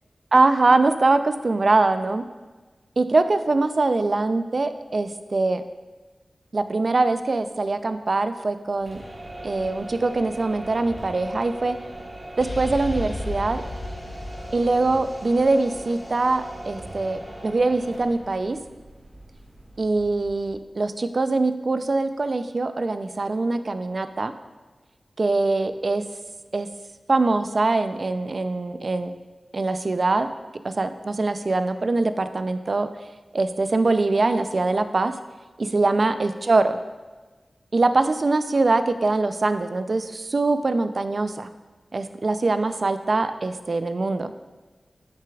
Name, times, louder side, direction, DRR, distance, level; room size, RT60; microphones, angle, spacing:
voice 1, 0.3-2.2 3.0-5.6 6.5-9.0 9.4-11.8 12.4-13.6 14.5-18.6 19.8-24.3 25.2-26.0 26.5-26.7 27.1-29.1 29.5-30.3 30.6-32.9 33.3-35.1 35.6-36.8 37.7-41.5 41.9-44.3, right 3 dB, 60° right, 10 dB, 0.4 m, -23 dB
sound 1, 8.7-20.6, right 1 dB, 40° right, 1.7 m, -39 dB
sound 2, 12.4-16.2, left 1 dB, 60° left, 0.6 m, -35 dB
8.1 x 6.7 x 2.3 m, 1.3 s
cardioid pair, 45°, 0 cm